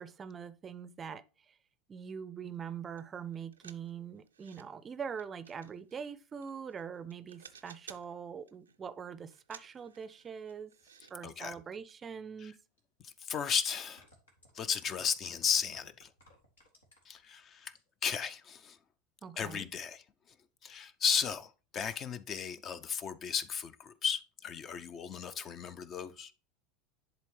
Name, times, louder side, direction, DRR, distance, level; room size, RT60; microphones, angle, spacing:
voice 1, 0.0-1.6 1.9-10.7 11.1-12.5 19.2-19.7, right 7 dB, 25° right, 0.5 m, -43 dB
sound 1, 3.0-3.1 3.3-4.7 5.2-6.8 7.1-8.1 8.5-8.8 9.3-11.1 11.4-11.6 11.9-12.0, right 7 dB, 80° right, 0.4 m, -56 dB
voice 2, 11.2-11.6 12.4-12.5 13.0-14.0 14.5-16.1 17.1-17.7 18.0-18.8 19.4-20.0 20.6-26.3, left 7 dB, 35° left, 0.5 m, -35 dB
sound 2, 12.8-12.9 13.8-17.2 17.5-18.0 18.4-18.5, left 1 dB, 80° left, 1.9 m, -61 dB
10.5 x 3.8 x 3.2 m
figure-of-eight pair, 80°, 0 cm